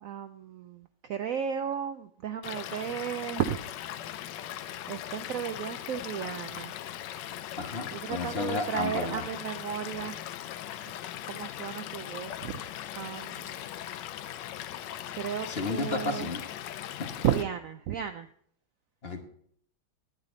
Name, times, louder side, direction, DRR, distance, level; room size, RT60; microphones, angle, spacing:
voice 1, 0.0-3.6 4.9-6.7 7.9-10.2 11.2-12.6 13.0-13.6 15.2-16.3 17.2-18.3, right 9 dB, 75° right, 9 dB, 0.7 m, -34 dB
Stream / Liquid, 2.4-17.4, left 11 dB, 85° left, 1.3 m, -39 dB
voice 2, 7.6-9.3 15.4-16.4 17.0-17.1 19.0-19.2, left 3 dB, 40° left, 4 dB, 1.2 m, -32 dB
9.6 x 9.1 x 4.0 m, 0.64 s
omnidirectional pair, 1.9 m